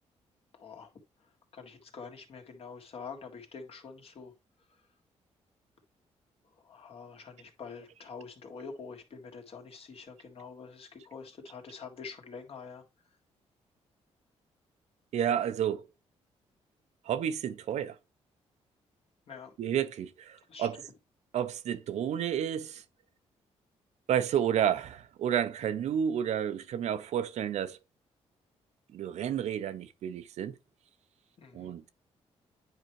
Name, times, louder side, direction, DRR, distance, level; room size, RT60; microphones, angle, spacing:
voice 1, 0.6-0.9 1.5-4.3 6.6-12.8 19.3-19.5 20.5-20.7 31.4-31.7, left 5 dB, 55° left, 1.9 m, -46 dB
voice 2, 15.1-15.9 17.0-18.0 19.6-20.8 21.3-22.8 24.1-27.8 28.9-30.6 31.5-31.9, right 9 dB, 70° right, 0.6 m, -31 dB
9.3 x 4.7 x 3.1 m
cardioid pair, 115°, 12 cm